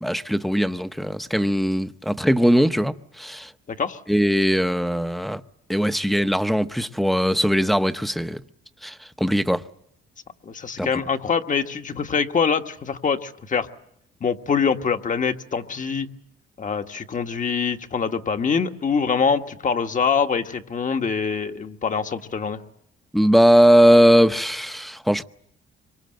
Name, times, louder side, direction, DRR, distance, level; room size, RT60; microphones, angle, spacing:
voice 1, 0.0-3.5 4.1-5.4 5.7-8.4 8.8-9.6 10.8-10.9 23.1-25.2, equal, ahead, 0.9 m, -19 dB
voice 2, 10.4-13.7 14.2-16.1 16.6-22.6, left 6 dB, 40° left, 1.5 m, -24 dB
25.5 x 24.5 x 7.8 m
cardioid pair, 90°, 20 cm